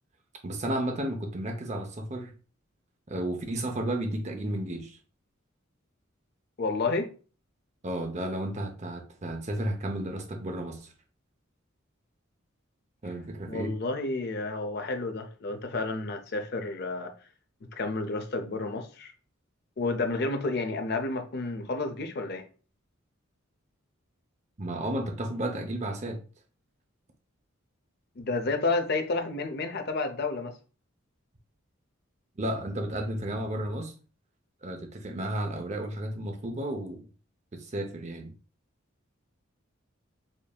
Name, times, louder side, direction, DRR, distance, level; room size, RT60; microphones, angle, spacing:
voice 1, 0.4-2.3 3.1-5.0 7.8-10.9 13.0-13.7 24.6-26.2 32.4-33.9 34.6-37.0 37.5-38.3, right 1 dB, 35° right, 0.6 m, -33 dB
voice 2, 6.6-7.1 13.5-17.1 17.7-19.1 19.8-22.4 28.2-30.5, left 3 dB, 50° left, 0.5 m, -30 dB
5.0 x 2.7 x 2.3 m
head